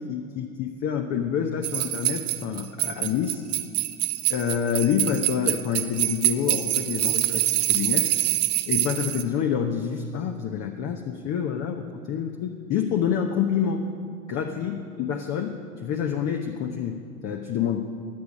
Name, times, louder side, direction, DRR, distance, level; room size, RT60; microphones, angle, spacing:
voice 1, 0.0-3.4 4.3-8.1 8.7-13.9 14.3-17.9, left 8 dB, 35° left, 5 dB, 1.0 m, -27 dB
sound 1, 1.6-9.2, right 14 dB, 35° right, 0.8 m, -25 dB
23.0 x 8.2 x 5.2 m, 2.2 s
hypercardioid pair, 90°, 44 cm